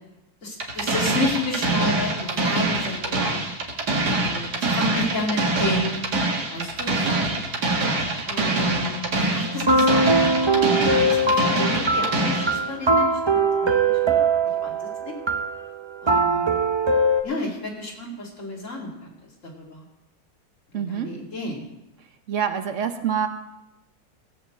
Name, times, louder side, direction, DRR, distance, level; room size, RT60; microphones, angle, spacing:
voice 1, 0.4-3.4 4.2-6.0 6.5-7.1 8.3-10.2 11.0-14.2 14.6-15.2 16.0-16.6 17.2-19.1 19.4-19.9 20.7-21.6, left 2 dB, 50° left, 0 dB, 2.6 m, -31 dB
sound 1, 0.6-12.6, right 2 dB, 90° right, 2.4 m, -24 dB
sound 2, 9.4-17.2, right 2 dB, 40° right, 0.4 m, -21 dB
voice 2, 20.7-21.1 22.3-23.3, right 8 dB, 55° right, 8 dB, 1.1 m, -26 dB
17.0 x 5.7 x 7.6 m, 0.93 s
omnidirectional pair, 1.7 m